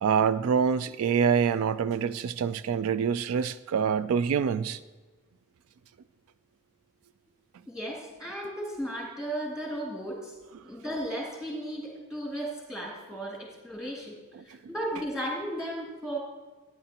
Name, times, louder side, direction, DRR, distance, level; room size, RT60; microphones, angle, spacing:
voice 1, 0.0-4.8 14.3-14.4, right 6 dB, 85° right, 15 dB, 0.3 m, -26 dB
voice 2, 7.7-10.3 10.6-14.1 14.4-16.2, right 1 dB, 5° right, -3 dB, 2.6 m, -35 dB
12.5 x 9.9 x 2.9 m, 1.3 s
head